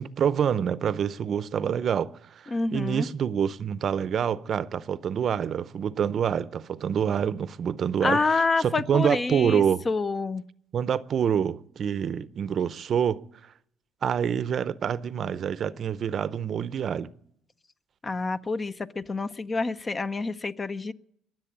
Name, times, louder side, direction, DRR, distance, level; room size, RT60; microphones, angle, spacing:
voice 1, 0.0-9.8 10.7-13.2 14.0-17.1, right 8 dB, 50° right, 0.6 m, -27 dB
voice 2, 2.5-3.1 8.0-10.4 18.0-20.9, left 3 dB, 30° left, 0.6 m, -27 dB
21.5 x 7.6 x 8.6 m
cardioid pair, 90°, 0 cm